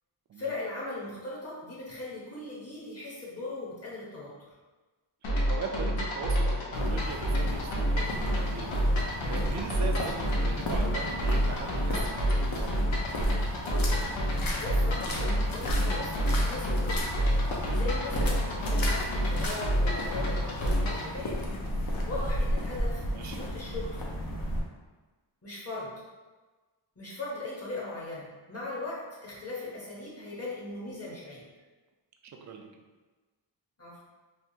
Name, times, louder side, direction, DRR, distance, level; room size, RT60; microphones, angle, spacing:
voice 1, 0.4-4.3 13.6-14.0 14.6-17.3 17.7-21.4 22.1-24.0 25.4-25.9 27.0-31.4 33.8-34.0, left 2 dB, 30° left, -6 dB, 1.1 m, -39 dB
sound 1, 5.2-21.1, equal, 80° left, 0.8 m, -28 dB
voice 2, 5.5-12.8 18.0-18.2 23.1-23.4 32.2-32.7, right 5 dB, 40° right, 3 dB, 0.4 m, -40 dB
Walking in water puddle, 6.7-24.6, equal, 50° left, 0.6 m, -34 dB
3.4 x 2.4 x 2.8 m, 1.3 s
wide cardioid pair, 110°, 46 cm